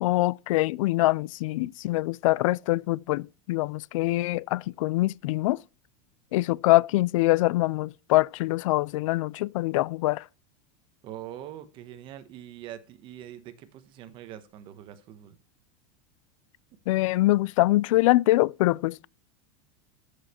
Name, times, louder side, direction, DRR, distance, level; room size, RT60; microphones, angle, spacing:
voice 1, 0.0-5.6 6.3-10.2 16.9-19.1, left 18 dB, 70° left, 0.4 m, -24 dB
voice 2, 11.0-15.4, right 11 dB, 30° right, 1.1 m, -43 dB
13.5 x 6.5 x 4.3 m
supercardioid pair, 180°, 18 cm